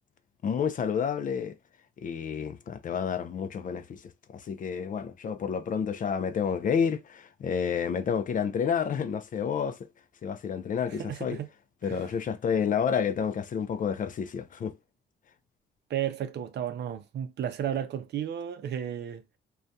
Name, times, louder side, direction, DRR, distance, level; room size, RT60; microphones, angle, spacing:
voice 1, 0.4-1.5 2.0-4.0 4.3-9.8 10.2-11.4 11.8-14.8, left 7 dB, 45° left, 0.4 m, -29 dB
voice 2, 10.9-11.5 11.8-12.0 15.9-19.2, right 9 dB, 60° right, 0.5 m, -33 dB
2.6 x 2.2 x 2.2 m
cardioid pair, 90°, 20 cm